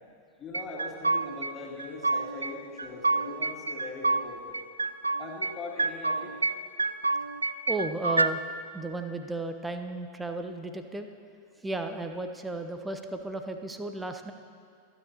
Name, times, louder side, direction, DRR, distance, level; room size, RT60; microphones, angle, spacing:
voice 1, 0.4-4.4 5.2-6.3, left 3 dB, 20° left, -3 dB, 2.8 m, -41 dB
sound 1, 0.5-1.5 1.8-2.5 2.8-4.2 4.5-5.5 5.8-6.5 6.8-8.3, right 3 dB, 80° right, 0.3 m, -28 dB
voice 2, 7.7-8.4 8.7-11.1 11.6-14.3, right 2 dB, 10° right, 7 dB, 0.8 m, -34 dB
26.0 x 10.0 x 2.9 m, 2.2 s
figure-of-eight pair, 90°, 0 cm